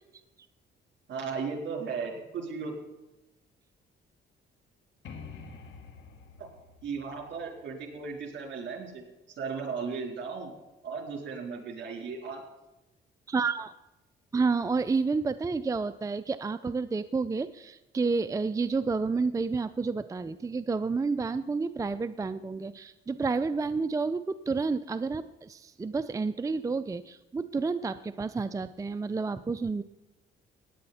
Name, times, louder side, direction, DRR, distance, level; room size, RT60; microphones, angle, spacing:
voice 1, 1.1-2.7 6.4-6.5 6.8-9.0 9.4-10.5 10.8-12.4, right 5 dB, 65° right, 2 dB, 3.8 m, -36 dB
sound 1, 5.0-8.7, left 5 dB, 70° left, 1.8 m, -48 dB
voice 2, 13.3-13.7 14.3-29.8, right 4 dB, 15° right, 12 dB, 0.4 m, -30 dB
16.5 x 9.9 x 4.2 m, 0.99 s
cardioid pair, 90°, 20 cm